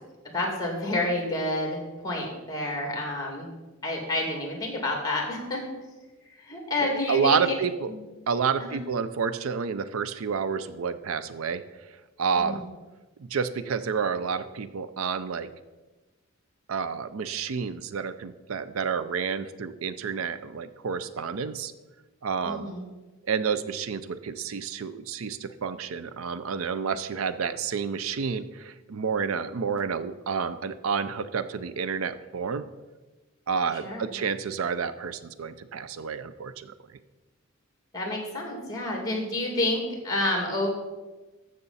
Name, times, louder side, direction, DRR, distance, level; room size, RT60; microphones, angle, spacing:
voice 1, 0.3-3.5 3.8-5.6 6.4-7.4 7.9-8.0 8.6-8.8 12.4-12.6 22.4-22.9 33.8-34.1 37.9-40.7, left 2 dB, 20° left, 1 dB, 2.4 m, -29 dB
voice 2, 6.8-7.9 8.3-11.6 12.2-12.6 13.3-15.5 16.7-21.7 22.2-22.7 23.3-32.7 33.5-36.7, right 6 dB, 75° right, 13 dB, 0.5 m, -29 dB
14.0 x 6.7 x 4.1 m, 1.2 s
head